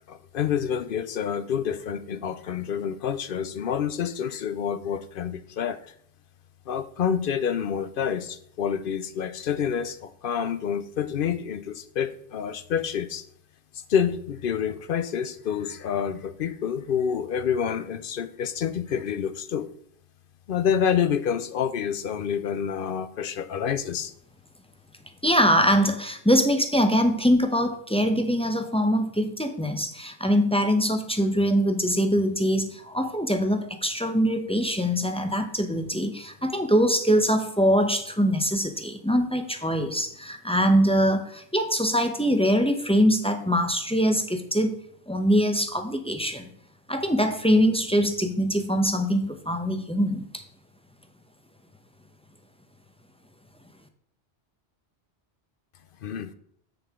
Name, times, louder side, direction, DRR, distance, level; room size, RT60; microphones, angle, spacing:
voice 1, 0.1-5.9 6.7-13.3 13.7-19.7 20.5-24.1 56.0-56.3, left 8 dB, 60° left, 11 dB, 0.7 m, -28 dB
voice 2, 25.2-44.8 45.1-46.5 46.9-50.4, equal, 5° left, 6 dB, 0.6 m, -23 dB
7.7 x 7.0 x 3.6 m, 0.66 s
omnidirectional pair, 1.1 m